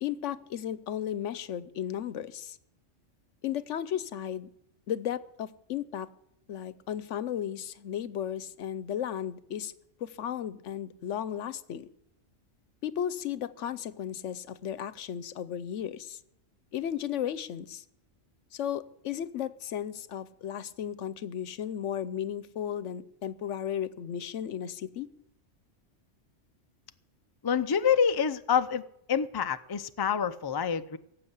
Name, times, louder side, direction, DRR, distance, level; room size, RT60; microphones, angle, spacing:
voice 1, 0.0-2.6 3.4-4.5 4.9-6.1 6.5-9.7 10.0-11.9 12.8-16.2 16.7-17.8 18.5-25.1, left 10 dB, 75° left, 16 dB, 1.0 m, -34 dB
voice 2, 27.4-28.8 29.1-31.0, left 7 dB, 40° left, 10 dB, 0.3 m, -27 dB
18.0 x 7.6 x 8.1 m, 0.77 s
omnidirectional pair, 1.3 m